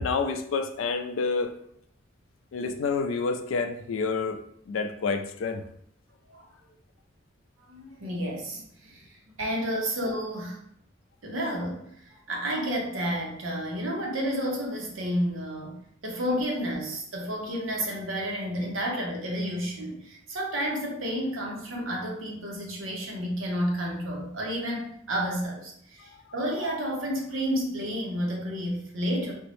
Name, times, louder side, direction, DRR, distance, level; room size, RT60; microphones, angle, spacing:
voice 1, 0.0-1.5 2.5-4.4 4.7-5.6, left 4 dB, 80° left, 8 dB, 0.4 m, -28 dB
voice 2, 7.7-10.6 11.2-15.8 16.0-29.3, equal, 85° right, -1 dB, 0.8 m, -31 dB
3.5 x 2.0 x 3.0 m, 0.68 s
head